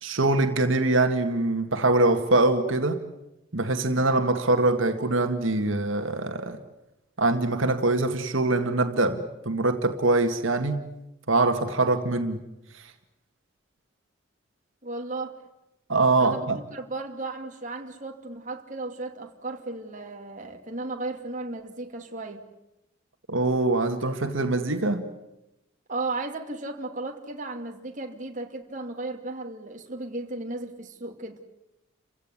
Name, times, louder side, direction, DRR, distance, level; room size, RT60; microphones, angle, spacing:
voice 1, 0.0-3.0 3.5-6.6 7.2-10.9 11.3-12.4 12.7-12.8 15.9-16.6 23.3-25.0, right 2 dB, 80° right, 2.0 m, -23 dB
voice 2, 14.8-15.4 16.2-22.4 25.9-31.4, right 2 dB, 40° right, 2.5 m, -35 dB
29.5 x 16.5 x 9.9 m
head